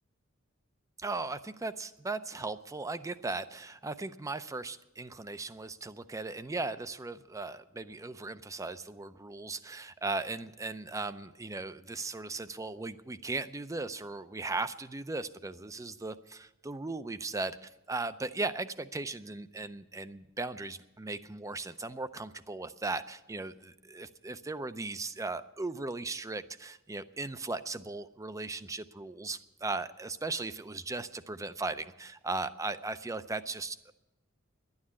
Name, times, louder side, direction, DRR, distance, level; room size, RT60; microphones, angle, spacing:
voice 1, 1.0-33.9, right 3 dB, 15° right, 13 dB, 0.5 m, -37 dB
11.5 x 9.6 x 9.9 m, 0.98 s
head